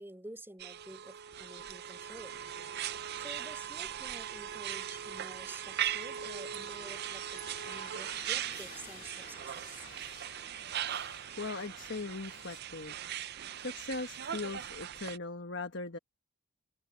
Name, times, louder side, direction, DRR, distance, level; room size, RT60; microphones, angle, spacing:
voice 1, 0.0-2.4 3.2-9.9, right 1 dB, 10° right, 4.3 m, -50 dB
sound 1, 0.6-15.2, right 10 dB, 45° right, 0.5 m, -39 dB
sound 2, 4.7-12.6, left 6 dB, 35° left, 2.7 m, -54 dB
voice 2, 11.4-13.1 13.6-16.0, left 3 dB, 50° left, 1.3 m, -40 dB
head